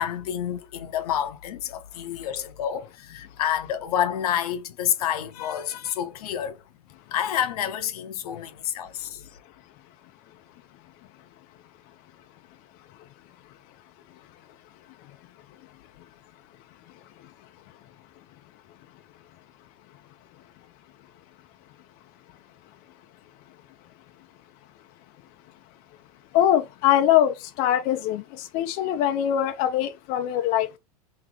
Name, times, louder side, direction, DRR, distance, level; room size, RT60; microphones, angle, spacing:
voice 1, 0.0-6.6 7.1-9.2, left 10 dB, 75° left, 0.8 m, -28 dB
voice 2, 26.3-30.8, left 11 dB, 50° left, 0.6 m, -23 dB
3.0 x 3.0 x 3.6 m
hypercardioid pair, 110°, 20 cm